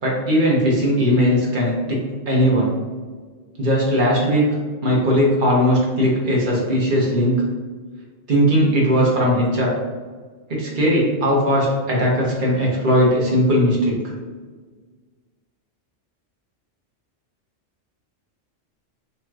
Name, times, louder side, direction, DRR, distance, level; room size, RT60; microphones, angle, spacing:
voice 1, 0.0-2.7 3.6-7.4 8.3-9.7 10.5-14.1, equal, 45° right, -3 dB, 1.2 m, -19 dB
5.5 x 3.0 x 2.5 m, 1.5 s
omnidirectional pair, 1.3 m